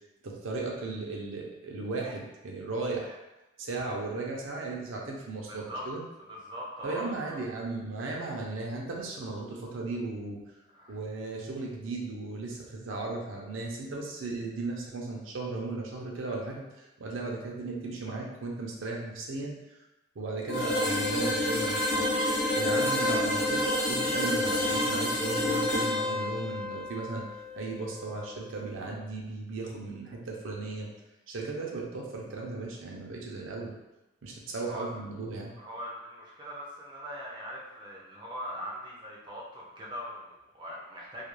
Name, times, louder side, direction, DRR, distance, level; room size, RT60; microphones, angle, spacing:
voice 1, 0.2-3.2 3.6-6.0 6.8-10.4 10.9-19.8 20.2-22.1 22.6-27.2 27.6-30.9 31.3-33.8 34.2-35.5, right 3 dB, 80° right, -2 dB, 0.5 m, -36 dB
voice 2, 5.5-5.9 6.3-7.4 10.7-11.0 22.8-22.9 34.6-34.9 35.6-41.3, equal, 25° right, -4 dB, 0.4 m, -41 dB
sound 1, 20.5-28.3, left 1 dB, 65° left, 0.9 m, -29 dB
2.4 x 2.2 x 3.0 m, 0.97 s
head